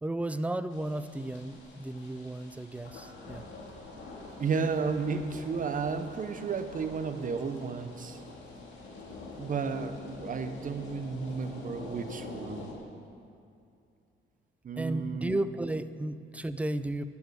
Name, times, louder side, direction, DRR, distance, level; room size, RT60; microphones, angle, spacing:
voice 1, 0.0-3.5 14.8-17.0, right 1 dB, 5° right, 12 dB, 0.4 m, -34 dB
sound 1, 0.7-12.7, left 2 dB, 90° left, 2.0 m, -46 dB
voice 2, 4.4-8.2 9.4-12.7 14.6-15.4, right 5 dB, 40° right, 8 dB, 0.8 m, -33 dB
11.5 x 4.9 x 8.1 m, 2.5 s
cardioid pair, 90°, 20 cm